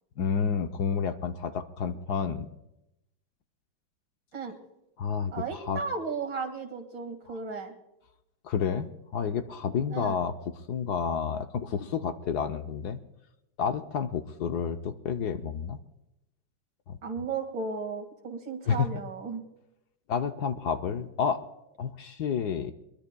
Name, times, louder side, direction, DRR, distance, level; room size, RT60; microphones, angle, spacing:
voice 1, 0.2-2.5 5.0-5.8 8.4-10.3 10.7-13.0 13.6-15.8 16.9-17.0 18.7-18.9 20.1-21.4 21.8-22.7, left 6 dB, 65° left, 7 dB, 1.2 m, -30 dB
voice 2, 5.3-7.7 9.9-10.2 17.0-19.4, right 5 dB, 80° right, 4 dB, 2.8 m, -35 dB
23.0 x 22.0 x 2.3 m, 0.88 s
omnidirectional pair, 2.1 m